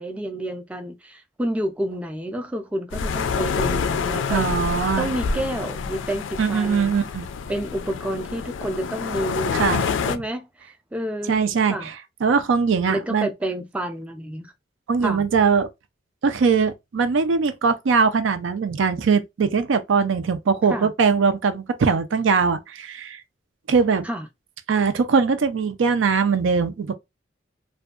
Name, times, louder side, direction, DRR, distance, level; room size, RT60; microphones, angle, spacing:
voice 1, 0.0-4.5 5.0-7.0 7.5-9.6 10.1-10.5 10.9-11.4 11.7-11.9 12.9-14.5 15.0-15.2 20.7-20.9 24.0-24.3, right 1 dB, 5° right, 0.4 m, -29 dB
sound 1, 2.9-10.2, left 5 dB, 80° left, 0.3 m, -27 dB
voice 2, 4.3-5.1 6.4-7.3 9.5-9.9 11.3-11.9 12.2-13.3 14.9-15.7 16.2-23.2 23.7-24.1 24.7-26.9, right 5 dB, 80° right, 0.4 m, -21 dB
2.6 x 2.3 x 2.4 m
head